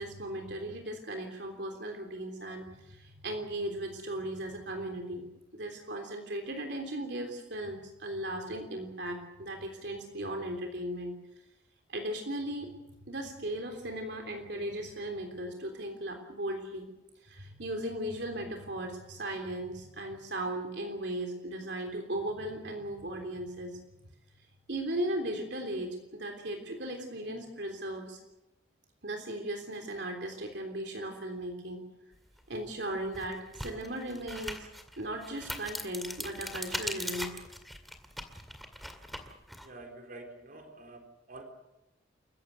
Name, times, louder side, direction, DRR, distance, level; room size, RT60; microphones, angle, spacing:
voice 1, 0.0-5.2 5.5-11.1 11.9-12.7 13.0-16.9 17.2-23.8 24.7-28.2 29.0-31.8 32.5-34.7 35.0-37.3, right 1 dB, 60° right, 3 dB, 3.5 m, -37 dB
sound 1, 32.4-32.5 33.0-39.7, equal, ahead, 2.1 m, -40 dB
voice 2, 39.6-41.4, right 2 dB, 45° right, 3 dB, 3.9 m, -48 dB
29.0 x 15.5 x 8.2 m, 0.93 s
head